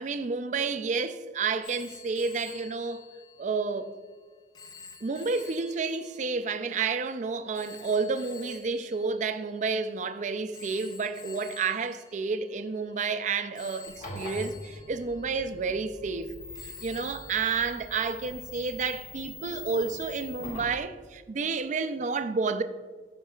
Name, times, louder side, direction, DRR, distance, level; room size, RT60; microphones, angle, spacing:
voice 1, 0.0-3.0 3.4-3.9 5.0-16.4 16.8-22.6, right 4 dB, 45° right, 0.4 m, -30 dB
Telephone, 1.6-10.0 10.5-13.1 13.5-16.3 16.5-18.3, left 5 dB, 25° left, 0.4 m, -50 dB
sound 1, 13.9-20.8, left 1 dB, 45° left, 1.7 m, -43 dB
12.5 x 5.3 x 2.3 m
head